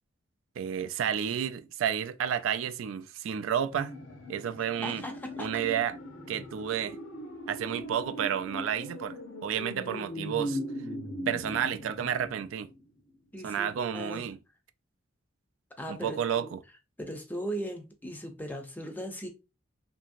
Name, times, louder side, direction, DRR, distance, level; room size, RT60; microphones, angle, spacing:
voice 1, 0.6-3.9 4.3-5.0 5.4-6.0 6.3-7.0 7.5-10.6 11.3-12.7 13.4-14.4 15.9-16.6, right 8 dB, 80° right, 0.3 m, -31 dB
sound 1, 3.7-12.8 13.1-13.2, equal, 70° left, 0.7 m, -40 dB
voice 2, 4.8-5.5 13.3-14.3 15.8-16.5 17.0-19.3, right 1 dB, 10° left, 0.5 m, -38 dB
2.9 x 2.6 x 2.4 m
head